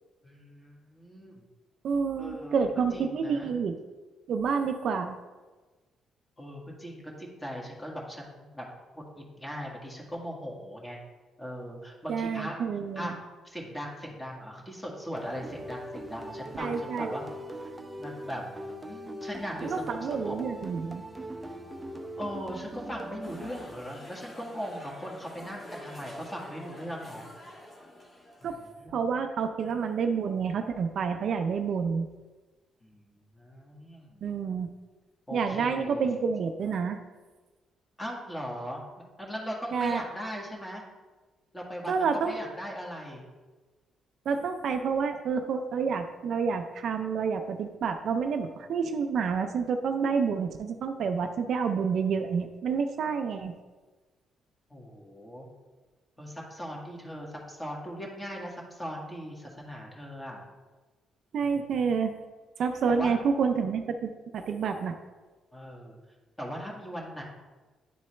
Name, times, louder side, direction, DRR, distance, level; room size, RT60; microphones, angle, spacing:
voice 1, 0.2-1.4 2.2-2.7 2.9-3.5 6.4-8.7 8.9-11.0 11.4-12.6 12.9-13.2 13.4-17.2 18.0-18.4 18.8-20.4 22.2-27.3 28.4-29.0 32.8-34.2 35.3-36.2 38.0-38.8 39.2-40.8 41.5-43.2 54.7-55.5 56.2-60.4 61.4-61.9 62.9-63.2 65.5-66.0 66.4-67.2, equal, 15° left, -2 dB, 1.7 m, -39 dB
voice 2, 1.8-3.8 4.3-5.2 12.1-13.1 16.6-17.1 19.6-21.0 28.4-28.6 28.9-32.1 34.2-34.7 35.3-37.0 39.7-40.0 41.9-42.3 44.3-53.6 61.3-62.2 62.6-65.0, right 5 dB, 65° right, 6 dB, 0.5 m, -29 dB
sound 1, 15.2-24.1, right 1 dB, 15° right, 0.6 m, -41 dB
sound 2, 23.2-28.7, left 1 dB, 30° left, 1.3 m, -47 dB
10.0 x 3.8 x 3.2 m, 1.3 s
cardioid pair, 90°, 0 cm